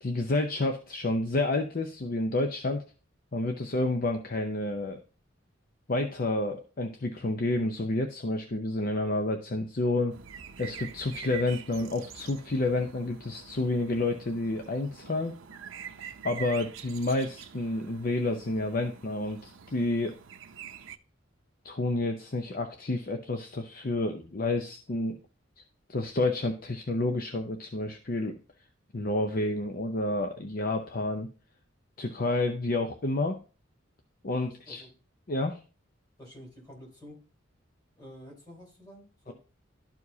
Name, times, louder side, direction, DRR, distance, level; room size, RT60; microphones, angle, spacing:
voice 1, 0.0-2.8 3.3-5.0 5.9-10.1 10.6-15.3 16.2-20.2 21.6-25.2 25.9-28.4 28.9-31.3 32.0-33.4 34.2-34.8 35.3-35.6 39.3-39.4, left 2 dB, 45° left, 0.6 m, -29 dB
sound 1, 10.1-21.0, right 7 dB, 85° right, 0.6 m, -46 dB
voice 2, 34.3-34.9 36.2-37.2 38.0-39.3, equal, 20° left, 3.3 m, -49 dB
12.0 x 4.8 x 2.7 m
head